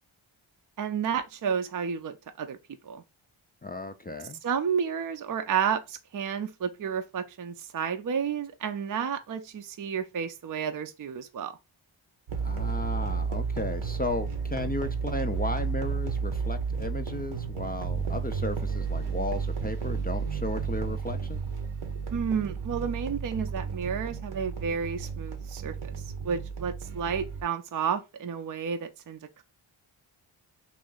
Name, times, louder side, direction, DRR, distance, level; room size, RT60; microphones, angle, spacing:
voice 1, 0.8-2.6 2.8-3.0 4.4-11.6 22.1-25.9 26.2-29.2, right 7 dB, 45° right, 0.5 m, -31 dB
voice 2, 3.6-4.4 12.4-21.4, left 2 dB, 20° left, 0.3 m, -34 dB
sound 1, 12.3-27.4, right 5 dB, 85° right, 0.9 m, -32 dB
3.1 x 2.6 x 3.7 m
cardioid pair, 45°, 49 cm